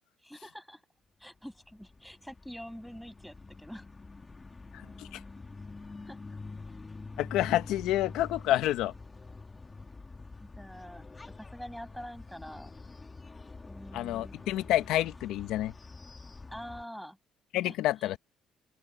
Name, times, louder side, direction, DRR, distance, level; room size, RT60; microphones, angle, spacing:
voice 1, 0.2-0.8 1.2-3.9 6.0-6.4 10.4-12.7 13.7-14.4 16.5-17.2 17.6-17.7 18.0-18.1, equal, ahead, 7.8 m, -45 dB
sound 1, 1.4-16.8, left 3 dB, 20° left, 1.5 m, -46 dB
voice 2, 7.2-8.9 13.9-15.7 17.5-18.2, left 14 dB, 80° left, 1.1 m, -28 dB
cardioid pair, 115°, 0 cm